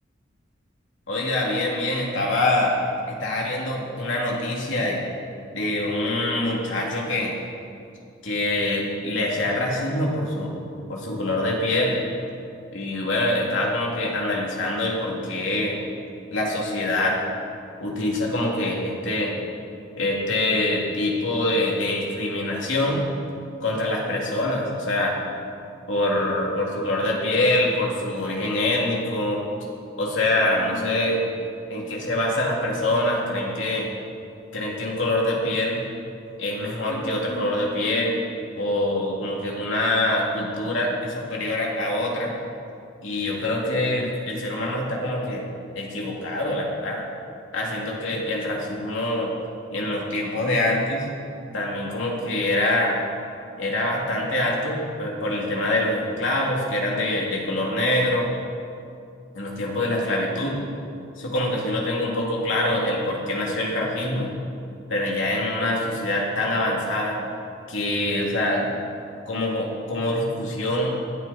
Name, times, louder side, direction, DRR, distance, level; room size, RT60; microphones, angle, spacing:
voice 1, 1.1-2.7 3.1-5.0 5.5-7.4 8.2-10.5 10.9-12.0 12.7-15.8 16.3-17.2 17.8-19.3 20.0-23.0 23.6-25.2 25.9-29.4 29.9-31.3 31.7-33.9 34.5-35.8 36.4-38.2 38.6-42.3 43.0-45.4 45.7-47.1 47.5-49.3 49.7-51.1 51.5-53.0 53.6-58.3 59.3-60.6 61.2-64.3 64.9-67.2 67.7-68.8 69.3-70.9, left 1 dB, 70° left, -3 dB, 3.1 m, -25 dB
20.0 x 11.0 x 4.4 m, 2.5 s
head